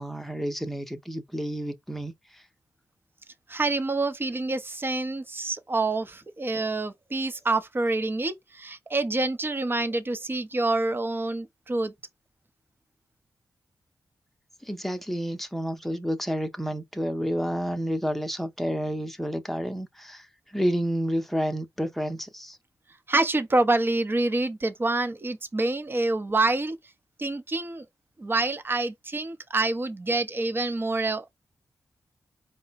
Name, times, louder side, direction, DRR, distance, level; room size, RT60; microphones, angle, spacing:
voice 1, 0.0-2.4 14.6-22.6, equal, 5° left, 0.9 m, -30 dB
voice 2, 3.5-11.9 23.1-26.8 27.2-27.8 28.2-31.3, right 2 dB, 30° right, 0.8 m, -27 dB
4.8 x 2.2 x 4.1 m
cardioid pair, 70°, 7 cm